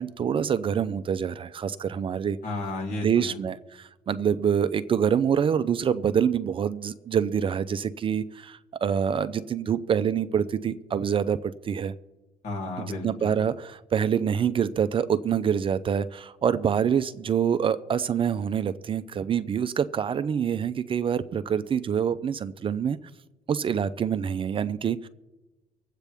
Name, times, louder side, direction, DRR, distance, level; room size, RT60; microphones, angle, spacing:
voice 1, 0.0-2.4 3.0-11.9 12.8-23.0 23.5-25.1, right 8 dB, 35° right, 13 dB, 0.5 m, -26 dB
voice 2, 2.4-3.4 12.4-13.4, left 2 dB, 70° left, -1 dB, 3.5 m, -33 dB
24.0 x 8.3 x 3.5 m, 1.1 s
cardioid pair, 125°, 16 cm